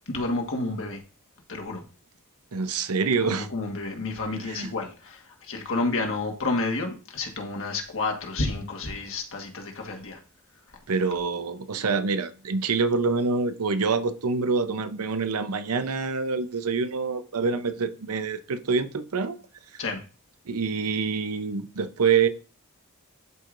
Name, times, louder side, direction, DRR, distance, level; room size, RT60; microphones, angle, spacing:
voice 1, 0.1-1.0 1.5-1.8 3.2-10.2 19.8-20.0, left 3 dB, 65° left, 1.5 m, -30 dB
voice 2, 2.5-3.5 4.4-4.7 10.9-19.4 19.7-19.8 20.5-22.3, right 5 dB, 80° right, 0.7 m, -26 dB
11.5 x 4.7 x 2.6 m
head